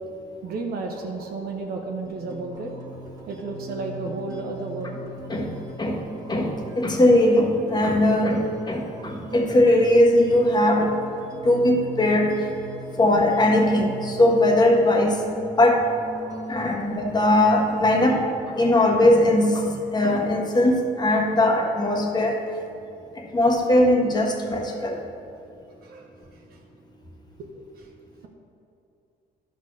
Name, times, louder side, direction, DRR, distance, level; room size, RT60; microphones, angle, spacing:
voice 1, 0.4-5.6 6.2-6.3 9.0-9.1 16.2-16.9 25.8-26.6 27.8-27.9, right 3 dB, 65° right, 1 dB, 0.9 m, -34 dB
sound 1, 2.0-18.1, right 2 dB, 20° right, 1.4 m, -39 dB
voice 2, 6.3-8.4 8.7-10.9 11.4-12.3 13.0-15.2 15.6-15.8 16.5-18.2 18.5-19.6 19.9-22.3 23.3-24.9, left 1 dB, 25° left, 1 dB, 1.4 m, -19 dB
11.5 x 4.0 x 6.3 m, 2.7 s
cardioid pair, 110°, 17 cm